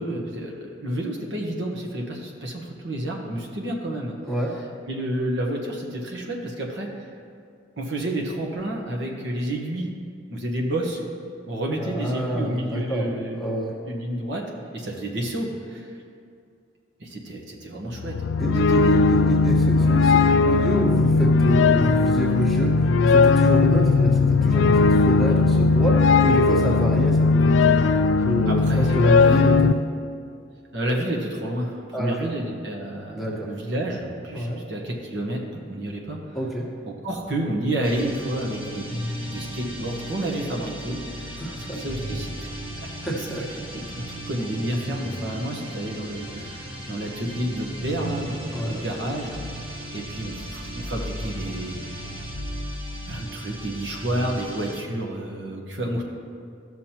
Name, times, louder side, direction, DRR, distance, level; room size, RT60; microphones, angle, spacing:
voice 1, 0.0-4.1 4.9-6.9 7.8-9.9 10.3-11.0 11.5-13.5 13.9-14.5 14.7-15.9 17.0-18.3 18.7-19.0 28.5-28.9 29.2-29.5 30.7-36.2 36.8-41.4 41.7-42.5 42.8-42.9 43.9-49.4 49.9-51.8 53.1-56.0, right 1 dB, 65° right, -1 dB, 1.2 m, -30 dB
voice 2, 11.8-13.1 13.4-13.7 18.4-29.8 31.9-32.3 33.1-33.5 34.3-34.6 36.3-36.6 41.4-41.8 43.0-43.5 48.5-48.8, equal, ahead, -5 dB, 1.4 m, -27 dB
sound 1, 17.9-29.7, left 4 dB, 75° left, 0.3 m, -18 dB
sound 2, 37.8-54.8, equal, 30° right, 1.7 m, -35 dB
15.5 x 6.2 x 2.9 m, 2.3 s
head